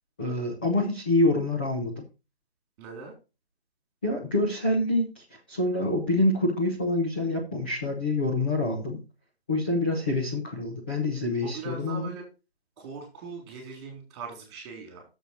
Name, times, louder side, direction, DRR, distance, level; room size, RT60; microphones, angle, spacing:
voice 1, 0.2-2.0 4.0-9.0 9.5-12.1, left 2 dB, 10° left, -2 dB, 0.6 m, -26 dB
voice 2, 2.8-3.1 11.4-12.2 12.8-15.0, right 4 dB, 15° right, 1 dB, 3.4 m, -40 dB
7.4 x 7.1 x 4.4 m, 0.29 s
hypercardioid pair, 165°, 31 cm